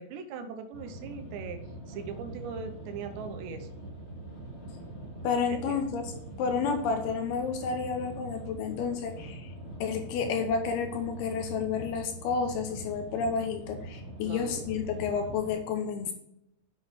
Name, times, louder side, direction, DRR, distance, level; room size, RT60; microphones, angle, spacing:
voice 1, 0.0-1.6 1.9-3.7 5.5-5.9 14.2-14.7, right 5 dB, 80° right, 8 dB, 3.1 m, -40 dB
sound 1, 0.7-15.5, right 1 dB, 20° left, 1.7 m, -43 dB
voice 2, 5.2-6.0 6.4-9.5 9.8-16.1, left 5 dB, 75° left, 5 dB, 2.5 m, -30 dB
7.8 x 7.6 x 4.5 m, 0.78 s
omnidirectional pair, 5.1 m